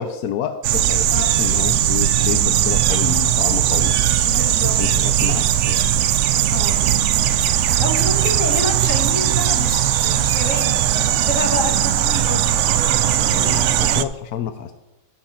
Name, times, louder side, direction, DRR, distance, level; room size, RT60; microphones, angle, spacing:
voice 1, 0.0-4.0 4.7-5.8 13.3-14.7, left 9 dB, 90° left, 9 dB, 1.1 m, -29 dB
sound 1, 0.6-14.0, right 11 dB, 65° right, 0.8 m, -18 dB
voice 2, 4.2-4.8 6.5-6.8 7.8-12.6, left 2 dB, 60° left, 3 dB, 2.2 m, -28 dB
15.5 x 8.0 x 4.4 m, 1.1 s
omnidirectional pair, 1.5 m